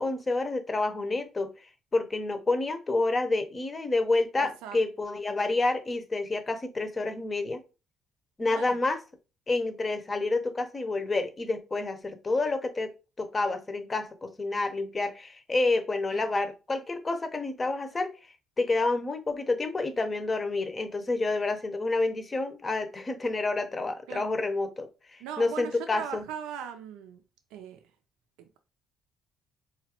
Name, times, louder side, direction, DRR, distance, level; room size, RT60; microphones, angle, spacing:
voice 1, 0.0-1.5 1.9-7.6 8.4-9.0 9.5-18.1 18.6-26.3, left 3 dB, 30° left, 9 dB, 0.7 m, -29 dB
voice 2, 4.4-4.8 8.5-8.8 16.1-16.2 24.1-24.3 25.2-27.2 27.5-27.8 28.4-28.6, right 8 dB, 90° right, 6 dB, 0.5 m, -39 dB
4.1 x 2.4 x 2.9 m, 0.31 s
supercardioid pair, 80°, 0 cm